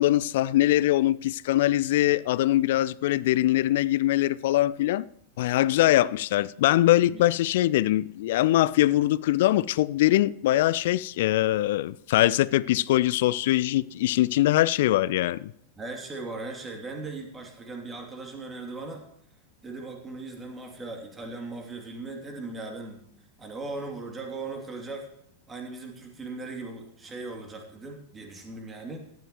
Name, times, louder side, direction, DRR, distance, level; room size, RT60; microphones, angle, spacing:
voice 1, 0.0-5.0 5.4-15.5, left 15 dB, 55° left, 0.4 m, -22 dB
voice 2, 15.8-19.0 19.6-23.0 23.4-25.1 25.5-29.0, right 3 dB, 15° right, 2.9 m, -38 dB
17.5 x 12.0 x 3.1 m
figure-of-eight pair, 90°, 0 cm